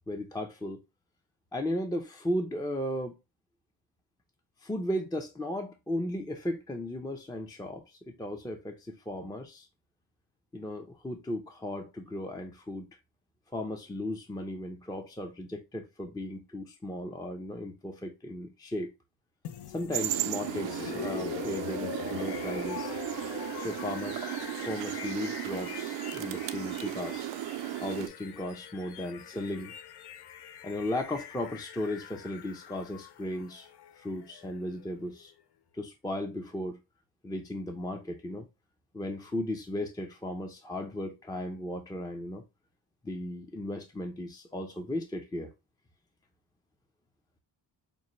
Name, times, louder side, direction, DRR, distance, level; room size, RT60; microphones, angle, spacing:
voice 1, 0.1-0.8 1.5-3.1 4.6-9.7 10.5-12.9 13.5-18.9 19.7-23.0 23.6-27.3 27.8-29.7 30.6-33.7 34.0-35.3 35.7-36.8 37.2-38.5 38.9-42.4 43.0-45.5, left 1 dB, 10° left, 0.5 m, -36 dB
sound 1, 19.4-35.3, left 10 dB, 65° left, 0.6 m, -43 dB
sound 2, 19.9-28.1, right 14 dB, 75° right, 0.6 m, -35 dB
5.2 x 2.2 x 3.0 m
cardioid pair, 95°, 44 cm